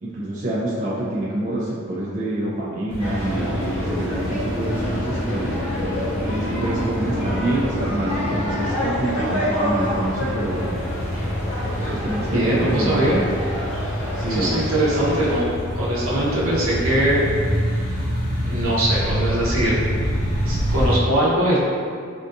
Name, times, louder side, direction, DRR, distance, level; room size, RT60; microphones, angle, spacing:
voice 1, 0.0-5.6 6.3-10.8 11.8-13.1 14.2-14.6, right 1 dB, 40° right, -8 dB, 0.4 m, -26 dB
sound 1, 2.9-20.9, equal, 50° left, 0.7 m, -27 dB
sound 2, 3.0-15.4, left 1 dB, 80° left, 1.3 m, -29 dB
sound 3, 3.2-8.7, equal, 35° left, 0.3 m, -31 dB
voice 2, 12.3-13.2 14.3-15.5 15.7-17.2 18.4-19.8 20.4-21.6, right 1 dB, 75° right, -6 dB, 0.8 m, -21 dB
3.6 x 2.3 x 2.5 m, 2.3 s
head